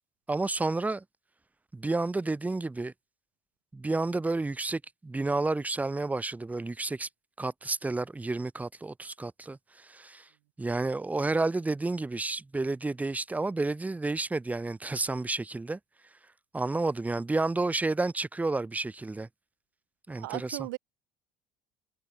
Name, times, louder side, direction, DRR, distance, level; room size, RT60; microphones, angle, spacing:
voice 1, 0.3-1.0 1.7-2.9 3.7-7.1 7.4-10.3 10.6-15.8 16.5-19.3 20.1-20.6, right 3 dB, 15° right, 2.4 m, -30 dB
voice 2, 20.1-20.8, right 22 dB, 75° right, 1.3 m, -37 dB
hypercardioid pair, 70°, 10 cm